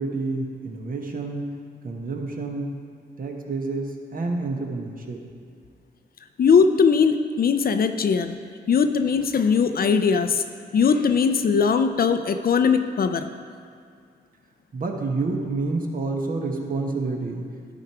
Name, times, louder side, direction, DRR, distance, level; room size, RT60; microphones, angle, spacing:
voice 1, 0.0-1.5 1.8-2.8 3.2-5.2 14.7-17.5, right 3 dB, 50° right, 2 dB, 1.2 m, -28 dB
voice 2, 6.4-8.4 8.7-10.4 10.7-13.3, left 6 dB, 55° left, 8 dB, 0.5 m, -20 dB
11.5 x 4.5 x 4.7 m, 2.2 s
cardioid pair, 60°, 19 cm